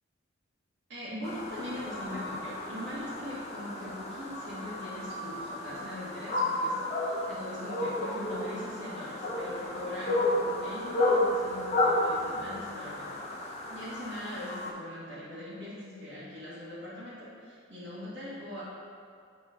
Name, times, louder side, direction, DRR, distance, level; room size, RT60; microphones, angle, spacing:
voice 1, 0.9-13.3 13.7-18.6, left 1 dB, 65° right, -8 dB, 1.6 m, -41 dB
sound 1, 1.2-14.7, left 1 dB, 35° left, 0.8 m, -32 dB
6.8 x 3.7 x 5.0 m, 2.3 s
head